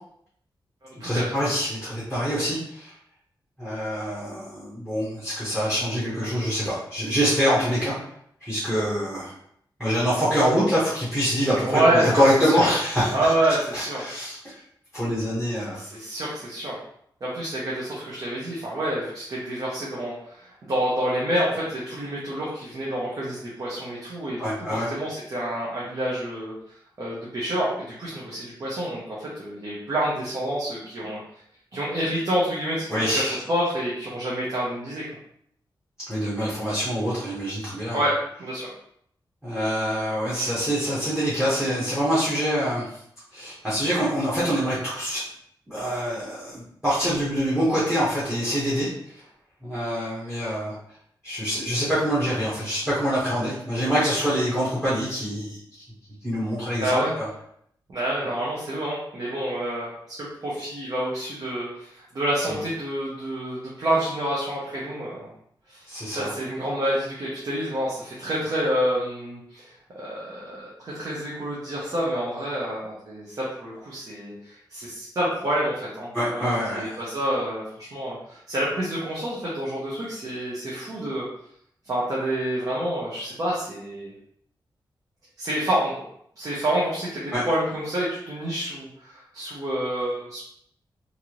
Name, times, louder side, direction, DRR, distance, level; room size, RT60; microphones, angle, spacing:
voice 1, 1.0-2.9 3.6-7.9 8.4-9.3 9.8-14.6 14.9-15.8 24.4-24.9 32.9-33.4 36.1-38.0 39.4-42.9 43.3-45.2 45.7-49.2 49.6-50.7 51.2-55.6 56.2-57.3 62.5-62.6 65.9-66.3 76.1-77.0 87.3-87.4, equal, 5° right, -9 dB, 1.0 m, -25 dB
voice 2, 11.7-12.6 13.1-14.1 15.7-16.8 17.2-26.5 27.0-31.2 31.7-35.0 37.9-38.1 38.4-38.7 56.8-57.1 57.9-65.3 65.7-65.8 66.1-81.3 81.8-84.1 85.4-85.9 86.4-90.4, right 1 dB, 45° right, -6 dB, 0.8 m, -28 dB
3.2 x 2.5 x 2.9 m, 0.69 s
wide cardioid pair, 175°, 8 cm